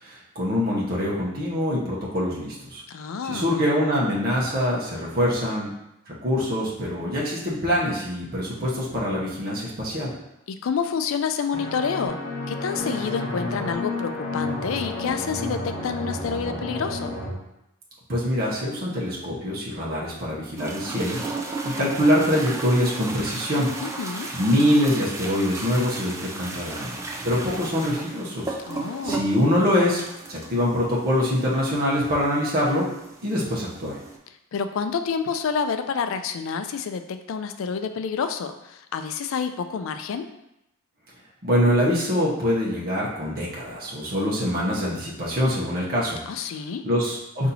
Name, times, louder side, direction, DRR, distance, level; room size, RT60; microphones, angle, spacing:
voice 1, 0.0-2.8 3.2-5.7 6.1-10.1 18.1-23.7 24.3-27.0 27.2-28.5 29.0-30.0 30.3-32.9 33.2-34.0 41.4-46.2 46.8-47.5, equal, 45° right, -5 dB, 0.9 m, -24 dB
voice 2, 2.9-3.5 10.5-12.2 12.5-17.1 23.8-24.3 28.7-29.2 34.5-40.3 46.3-46.9, left 6 dB, 65° left, 9 dB, 0.3 m, -28 dB
sound 1, 11.5-17.3, left 2 dB, 40° left, 0.9 m, -31 dB
toilet flush, 20.6-34.2, right 3 dB, 15° right, 0.4 m, -35 dB
4.1 x 2.7 x 4.1 m, 0.87 s
head